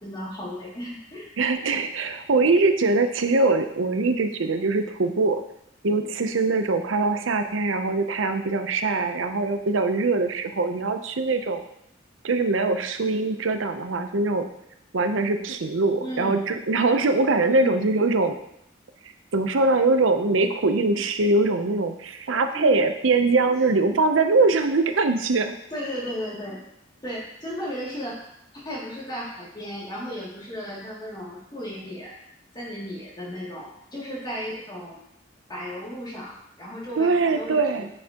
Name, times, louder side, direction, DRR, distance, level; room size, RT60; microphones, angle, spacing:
voice 1, 0.0-1.3 16.0-16.4 17.5-17.8 22.5-22.8 25.7-26.6 27.0-32.1 32.5-35.0 35.5-37.9, equal, 20° left, -6 dB, 2.5 m, -35 dB
voice 2, 1.4-5.4 5.8-11.6 12.2-14.5 14.9-18.4 19.3-25.5 37.0-37.9, right 3 dB, 85° right, 7 dB, 0.7 m, -22 dB
9.7 x 6.6 x 2.9 m, 0.77 s
head